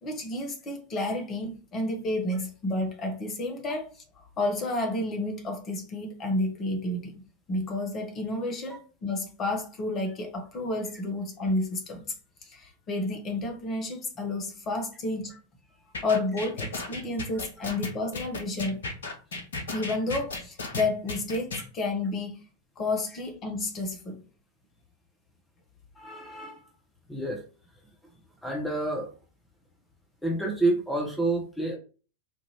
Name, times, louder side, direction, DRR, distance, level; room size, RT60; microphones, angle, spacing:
voice 1, 0.0-7.1 7.5-12.0 12.4-15.3 16.0-18.8 19.7-22.5 22.8-24.2, left 2 dB, 30° left, 1.1 m, -31 dB
sound 1, 15.9-21.6, left 3 dB, 65° left, 0.8 m, -34 dB
voice 2, 25.9-26.7 27.1-27.4 28.4-29.1 30.2-31.8, right 2 dB, 5° left, 0.9 m, -28 dB
4.4 x 2.7 x 2.9 m
figure-of-eight pair, 90°, 0 cm